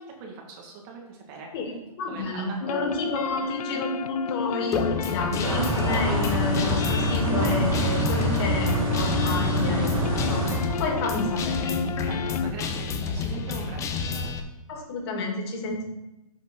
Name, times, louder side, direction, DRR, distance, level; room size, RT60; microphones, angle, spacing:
voice 1, 0.0-1.5 2.1-2.6 10.9-11.1 12.0-14.3, right 4 dB, 30° right, 1 dB, 1.7 m, -41 dB
voice 2, 1.5-11.9 14.7-15.8, left 2 dB, 40° left, 0 dB, 2.4 m, -30 dB
sound 1, 2.6-12.5, left 7 dB, 75° left, 0.5 m, -32 dB
Guitar, 4.7-14.4, left 5 dB, 15° left, 0.7 m, -30 dB
sound 2, 5.4-10.6, right 1 dB, 65° right, 2.7 m, -26 dB
7.9 x 4.6 x 5.5 m, 0.93 s
hypercardioid pair, 135°, 19 cm